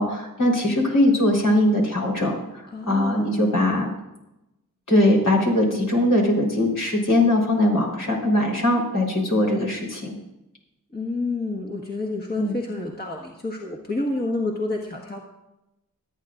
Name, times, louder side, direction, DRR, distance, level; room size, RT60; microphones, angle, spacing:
voice 1, 0.0-2.3 2.9-3.9 4.9-10.1 12.4-12.5, left 1 dB, 65° left, -2 dB, 4.0 m, -21 dB
voice 2, 2.7-3.3 10.9-15.2, left 2 dB, 30° left, -1 dB, 1.6 m, -29 dB
26.5 x 9.1 x 2.5 m, 0.92 s
wide cardioid pair, 75°, 34 cm